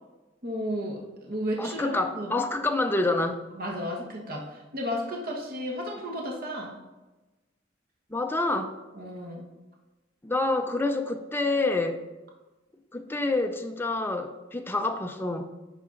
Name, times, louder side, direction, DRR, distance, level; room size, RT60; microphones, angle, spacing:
voice 1, 0.4-2.3 3.5-6.7 8.9-9.5, equal, 50° right, 0 dB, 1.3 m, -33 dB
voice 2, 1.6-3.4 8.1-8.7 10.2-12.0 12.9-15.5, left 2 dB, 10° left, 5 dB, 0.6 m, -27 dB
11.0 x 4.2 x 3.8 m, 1.1 s
head